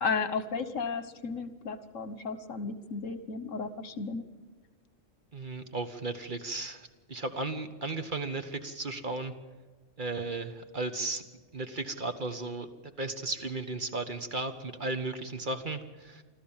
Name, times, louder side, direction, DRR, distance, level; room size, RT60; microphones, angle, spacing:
voice 1, 0.0-4.2, left 4 dB, 75° left, 12 dB, 1.6 m, -34 dB
voice 2, 5.3-9.3 10.0-11.2 11.5-12.7 13.0-16.2, right 2 dB, 40° right, 7 dB, 1.4 m, -35 dB
25.5 x 14.0 x 7.3 m, 1.4 s
omnidirectional pair, 1.4 m